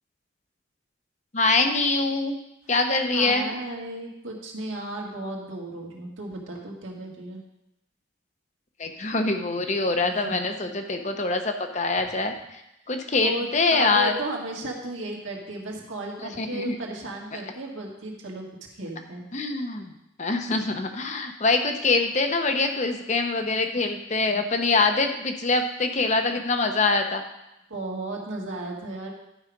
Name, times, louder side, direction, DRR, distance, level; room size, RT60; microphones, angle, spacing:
voice 1, 1.3-2.4 2.7-3.5 8.8-12.6 12.9-14.2 16.4-16.8 17.3-17.4 19.3-19.9 20.2-27.2, left 3 dB, 35° left, 6 dB, 0.8 m, -24 dB
voice 2, 3.1-7.4 10.0-10.2 13.2-18.4 18.7-19.2 27.7-29.1, right 2 dB, 90° right, -1 dB, 1.9 m, -34 dB
11.0 x 4.8 x 5.2 m, 0.88 s
head